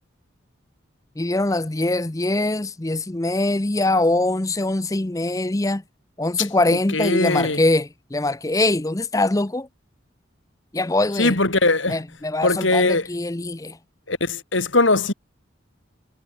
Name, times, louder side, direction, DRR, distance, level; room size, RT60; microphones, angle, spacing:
voice 1, 1.2-5.8 6.2-9.7 10.7-11.3 11.9-13.8, left 2 dB, 15° left, 0.6 m, -23 dB
voice 2, 6.9-7.6 11.2-12.0 12.4-13.1 14.1-15.1, left 2 dB, 75° left, 3.9 m, -20 dB
head